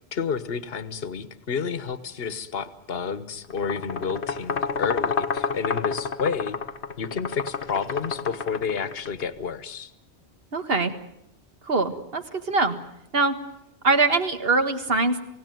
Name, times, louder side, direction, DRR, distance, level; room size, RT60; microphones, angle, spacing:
voice 1, 0.1-6.6 7.0-9.9, left 6 dB, 65° left, 13 dB, 1.4 m, -30 dB
sound 1, 3.5-9.2, left 5 dB, 85° left, 1.6 m, -30 dB
voice 2, 10.5-10.9 11.6-12.8 13.1-13.4 13.8-15.2, right 3 dB, 60° right, 8 dB, 2.0 m, -23 dB
28.5 x 17.5 x 9.3 m, 0.81 s
omnidirectional pair, 1.1 m